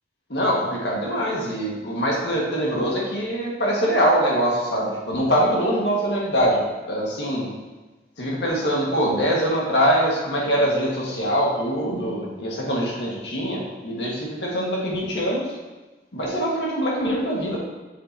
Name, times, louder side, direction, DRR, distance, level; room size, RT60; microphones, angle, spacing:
voice 1, 0.3-7.5 8.2-15.5 16.1-17.6, equal, 80° left, -3 dB, 1.8 m, -23 dB
7.8 x 6.7 x 2.8 m, 1.2 s
head